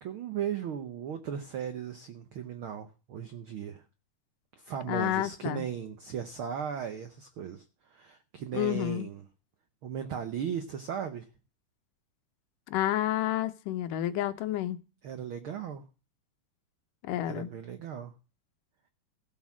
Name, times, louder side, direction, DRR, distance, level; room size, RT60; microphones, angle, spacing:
voice 1, 0.0-3.8 4.6-7.6 7.9-9.2 9.8-11.3 15.0-15.8 17.3-18.1, right 8 dB, 80° right, 1.1 m, -37 dB
voice 2, 4.9-5.6 8.5-9.1 12.7-14.8 17.0-17.5, left 13 dB, 85° left, 2.5 m, -30 dB
14.5 x 7.4 x 6.1 m
omnidirectional pair, 3.7 m